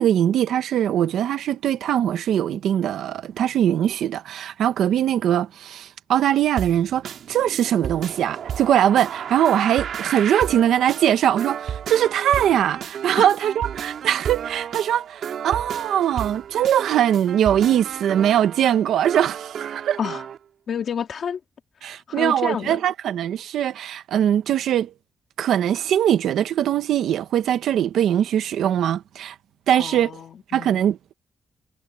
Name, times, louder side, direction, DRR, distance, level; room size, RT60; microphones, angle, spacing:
voice 1, 0.0-20.0 21.8-24.9 25.4-29.3 29.7-30.1 30.5-31.1, right 10 dB, 90° right, 1.1 m, -21 dB
sound 1, 6.6-20.4, right 8 dB, 65° right, 3.3 m, -33 dB
voice 2, 20.7-21.4 21.8-22.8 29.7-30.8, left 7 dB, 55° left, 2.3 m, -30 dB
wide cardioid pair, 145°, 0 cm